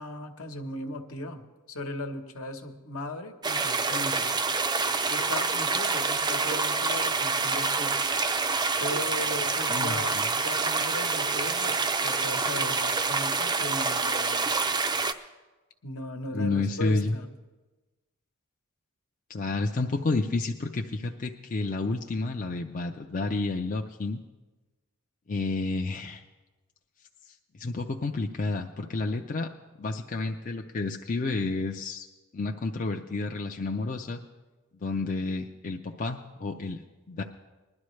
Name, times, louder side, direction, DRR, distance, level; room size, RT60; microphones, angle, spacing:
voice 1, 0.0-4.4 5.1-8.1 8.8-14.7 15.8-17.3, left 1 dB, 70° left, 5 dB, 1.1 m, -38 dB
sound 1, 3.4-15.1, right 4 dB, 20° right, 0.4 m, -27 dB
voice 2, 9.7-10.2 16.3-17.1 19.3-24.2 25.3-26.2 27.5-29.5 29.8-32.1 32.3-34.2 34.8-36.8 37.1-37.2, left 3 dB, 35° left, 3 dB, 0.5 m, -30 dB
20.5 x 11.5 x 3.2 m, 1.2 s
head